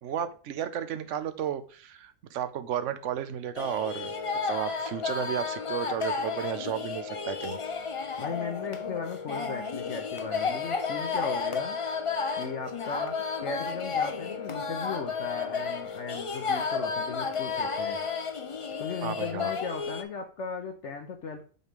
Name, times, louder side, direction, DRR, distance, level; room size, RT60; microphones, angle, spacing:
voice 1, 0.0-4.1 4.4-7.6 19.0-19.5, right 9 dB, 65° right, 11 dB, 1.0 m, -33 dB
sound 1, 3.6-20.0, left 5 dB, 45° left, 0.4 m, -32 dB
voice 2, 8.2-11.8 12.4-18.0 18.8-21.4, left 5 dB, 60° left, 4 dB, 1.1 m, -37 dB
8.1 x 3.2 x 5.2 m, 0.40 s
omnidirectional pair, 1.4 m